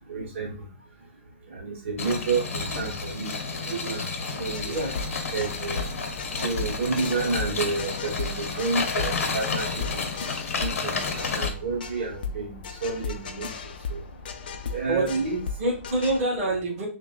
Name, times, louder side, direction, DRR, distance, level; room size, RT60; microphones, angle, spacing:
voice 1, 0.1-0.5 1.5-3.3 3.6-4.0 4.3-4.7 5.3-5.8 6.4-10.1 10.6-13.5 14.7-15.4, right 4 dB, 60° right, 1.1 m, -30 dB
sound 1, 2.0-11.5, left 4 dB, 85° left, 0.8 m, -31 dB
voice 2, 3.6-4.1 4.6-5.0 14.9-15.2 15.6-16.9, right 2 dB, 15° right, 1.6 m, -27 dB
sound 2, 4.4-16.2, left 4 dB, 40° left, 0.4 m, -36 dB
6.3 x 2.2 x 2.3 m
hypercardioid pair, 180°, 7 cm